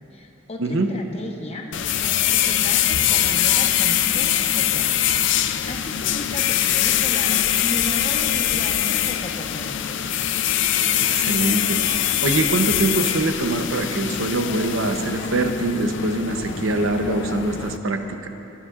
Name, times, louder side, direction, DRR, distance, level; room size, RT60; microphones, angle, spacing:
voice 1, 0.0-10.2, left 1 dB, 30° left, 2 dB, 1.0 m, -35 dB
voice 2, 0.6-0.9 11.0-18.3, right 2 dB, 70° right, 5 dB, 0.8 m, -24 dB
sound 1, 1.7-17.8, left 10 dB, 60° left, 0.4 m, -22 dB
20.5 x 11.5 x 2.5 m, 2.8 s
head